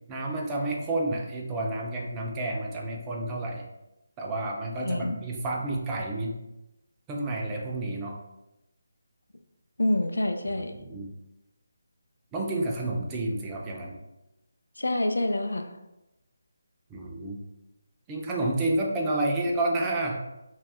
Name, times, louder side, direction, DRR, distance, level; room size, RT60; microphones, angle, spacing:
voice 1, 0.1-3.6 4.2-6.4 7.1-8.2 10.5-11.1 12.3-14.0 16.9-17.4 18.1-20.2, right 2 dB, 15° right, -1 dB, 0.4 m, -30 dB
voice 2, 4.8-5.2 9.8-10.8 14.8-15.7, left 1 dB, 90° left, 6 dB, 0.3 m, -27 dB
2.2 x 2.0 x 3.4 m, 0.94 s
figure-of-eight pair, 160°, 0 cm